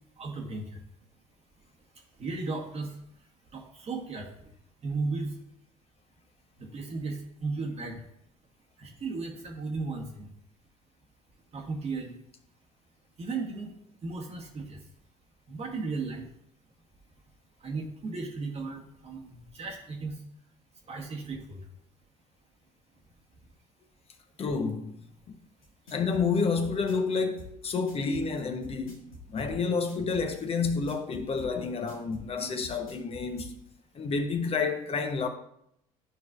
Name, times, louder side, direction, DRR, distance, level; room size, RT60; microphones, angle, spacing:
voice 1, 0.2-0.7 2.2-2.9 3.5-4.3 4.8-5.3 6.6-8.0 8.8-10.3 11.5-12.2 13.2-13.7 14.0-14.8 15.5-16.3 17.6-20.2 20.9-21.6, right 3 dB, 35° right, 1.3 m, -35 dB
voice 2, 24.4-24.9 25.9-33.6 33.9-35.3, left 4 dB, 35° left, 0.8 m, -29 dB
sound 1, 25.6-33.5, left 2 dB, 90° left, 1.5 m, -46 dB
11.0 x 4.6 x 2.4 m
hypercardioid pair, 65°, 18 cm